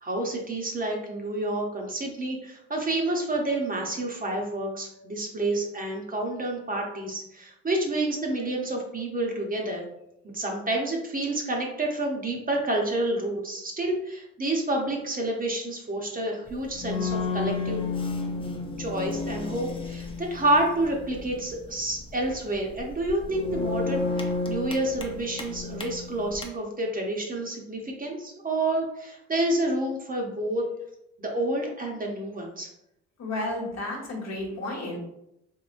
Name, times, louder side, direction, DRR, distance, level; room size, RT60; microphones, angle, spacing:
voice 1, 0.0-9.8 10.3-17.8 18.8-30.6 31.2-32.7, right 1 dB, 30° right, 1 dB, 0.8 m, -29 dB
sound 1, 16.5-26.4, left 3 dB, 20° left, 0.5 m, -32 dB
voice 2, 33.2-35.0, left 1 dB, 60° left, 0 dB, 1.1 m, -32 dB
3.7 x 2.9 x 2.5 m, 0.81 s
cardioid pair, 90°, 30 cm